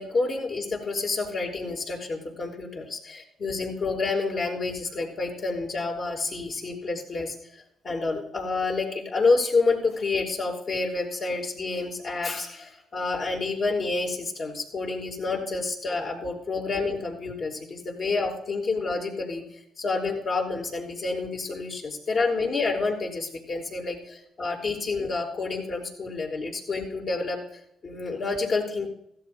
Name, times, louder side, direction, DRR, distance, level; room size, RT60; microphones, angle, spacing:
voice 1, 0.0-7.4 7.8-19.4 19.8-27.4 27.8-28.9, left 3 dB, 50° left, -2 dB, 5.9 m, -28 dB
16.0 x 16.0 x 2.2 m, 0.73 s
cardioid pair, 90°, 0 cm